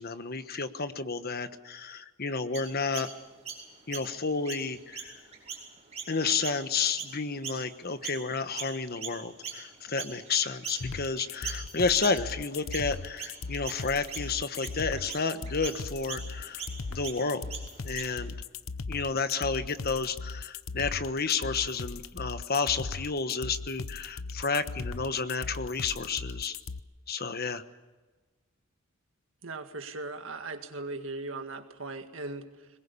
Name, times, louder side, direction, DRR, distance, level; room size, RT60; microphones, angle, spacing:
voice 1, 0.0-3.1 3.9-5.1 6.1-17.5 17.8-18.4 18.9-26.5 27.1-27.6, left 4 dB, 45° left, 10 dB, 1.2 m, -31 dB
Chirp tweet, 2.5-8.3 8.6-18.3, right 6 dB, 35° right, 5.8 m, -42 dB
sound 1, 10.8-26.8, left 4 dB, 80° left, 0.8 m, -38 dB
voice 2, 29.4-32.7, right 3 dB, 65° right, 6 dB, 1.9 m, -38 dB
22.5 x 21.0 x 8.5 m, 1.3 s
head